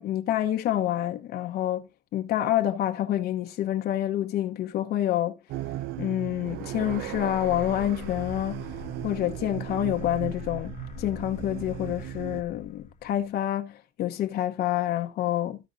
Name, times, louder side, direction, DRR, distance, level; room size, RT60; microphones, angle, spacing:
voice 1, 0.0-5.4 6.0-8.7 9.0-10.7 11.0-15.6, left 12 dB, 70° left, 0.9 m, -28 dB
sound 1, 5.5-12.4, right 14 dB, 85° right, 0.5 m, -37 dB
sound 2, 6.7-13.3, left 7 dB, 50° left, 1.0 m, -44 dB
14.5 x 5.2 x 2.5 m
cardioid pair, 110°, 17 cm